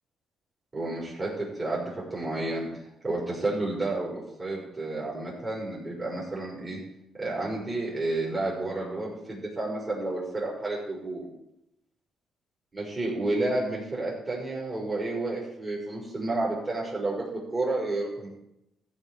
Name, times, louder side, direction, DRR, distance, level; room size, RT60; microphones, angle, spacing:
voice 1, 0.7-1.8 2.1-2.7 3.0-6.8 7.2-11.3 12.7-18.3, right 2 dB, 30° right, -5 dB, 4.9 m, -31 dB
14.0 x 4.9 x 8.9 m, 0.82 s
cardioid pair, 95°, 0 cm